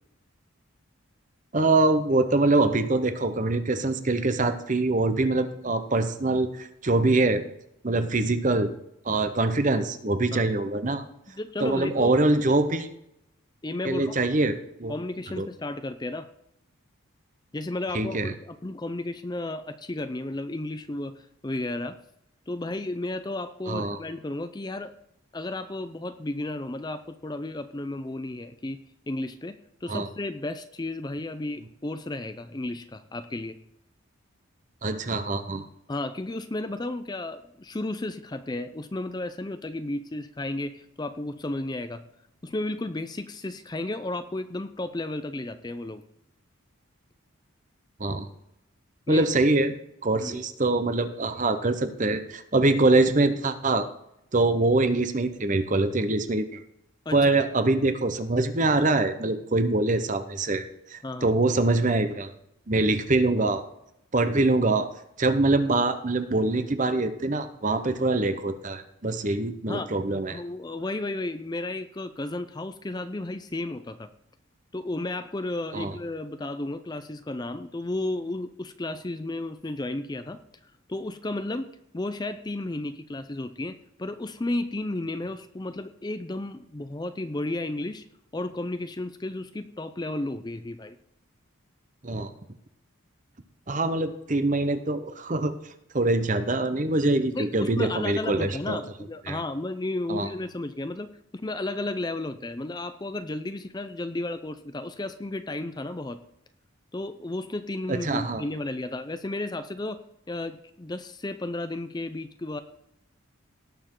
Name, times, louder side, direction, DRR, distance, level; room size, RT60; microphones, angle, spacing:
voice 1, 1.5-7.4 7.8-8.7 9.0-11.0 11.6-12.9 13.8-14.9 15.4-15.5 17.9-18.3 23.7-24.0 29.9-30.1 34.8-35.7 48.0-48.3 49.1-49.7 50.0-53.9 54.3-56.6 57.1-60.6 60.9-62.3 62.7-63.6 64.1-64.9 65.2-70.4 75.7-75.9 92.0-92.3 93.7-95.5 95.9-98.8 99.3-99.4 100.1-100.3 107.9-108.4, right 2 dB, 35° right, 10 dB, 0.9 m, -24 dB
voice 2, 11.3-12.2 13.6-14.2 14.9-16.3 17.5-22.0 22.5-24.9 25.3-28.8 29.1-33.6 35.9-42.0 42.4-46.0 49.1-49.2 50.1-50.4 57.1-57.4 61.0-61.3 69.7-69.9 70.3-74.1 74.7-80.4 80.9-88.0 88.3-91.0 97.3-106.2 106.9-110.0 110.3-112.6, left 2 dB, 20° left, 10 dB, 0.5 m, -33 dB
18.0 x 6.9 x 3.8 m, 0.79 s
head